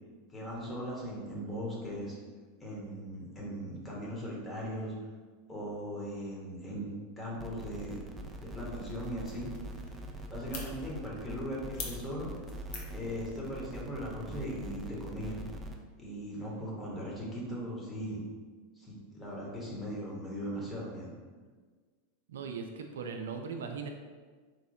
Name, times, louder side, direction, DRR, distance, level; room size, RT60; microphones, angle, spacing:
voice 1, 0.3-2.1 2.6-4.9 5.5-6.8 7.2-8.0 8.4-9.5 10.3-12.3 12.9-15.4 16.0-18.2 18.8-21.1, equal, 10° left, -5 dB, 1.2 m, -39 dB
sound 1, 7.3-15.7, right 1 dB, 10° right, 0.5 m, -43 dB
sound 2, 8.7-14.6, left 4 dB, 50° left, 0.7 m, -49 dB
voice 2, 22.3-23.9, right 5 dB, 65° right, 4 dB, 0.3 m, -39 dB
4.4 x 2.9 x 2.8 m, 1.5 s
figure-of-eight pair, 85°, 0 cm